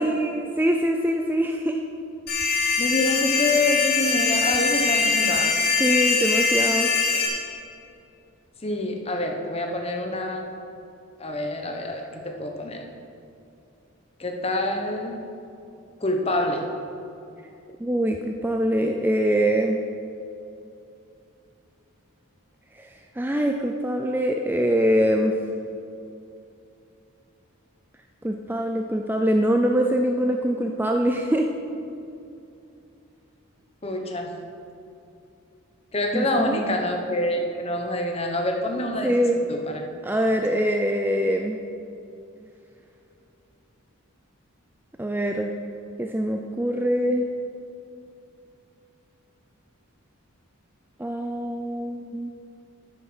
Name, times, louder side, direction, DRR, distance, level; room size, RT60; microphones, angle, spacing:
voice 1, 0.0-1.8 5.8-6.9 17.8-19.8 22.8-22.9 23.2-25.3 28.2-31.5 36.1-36.6 39.0-39.4 40.0-41.6 45.0-45.5 46.0-47.3 51.0-52.3, equal, 10° right, 3 dB, 0.4 m, -23 dB
sound 1, 2.3-7.3, left 4 dB, 45° left, 3.1 m, -22 dB
voice 2, 2.8-5.6 8.6-10.5 11.2-12.9 14.2-15.2 16.0-16.7 33.8-34.3 35.9-39.9, left 1 dB, 25° left, 3 dB, 1.0 m, -27 dB
9.4 x 9.2 x 6.3 m, 2.7 s
head